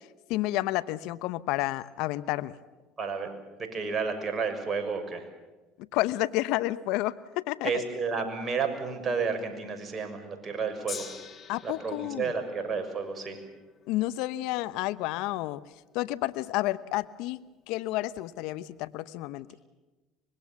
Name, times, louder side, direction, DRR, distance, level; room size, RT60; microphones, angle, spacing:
voice 1, 0.3-2.6 5.9-7.8 11.5-12.3 13.9-15.6 15.9-17.4 17.7-19.5, left 17 dB, 70° left, 15 dB, 0.9 m, -30 dB
voice 2, 3.0-3.3 3.6-5.3 7.6-11.1 11.6-13.4, right 5 dB, 30° right, 5 dB, 6.5 m, -31 dB
Gong, 10.9-17.2 18.0-18.1, left 7 dB, 40° left, 3.3 m, -47 dB
25.5 x 21.5 x 7.3 m, 1.2 s
hypercardioid pair, 80°, 0 cm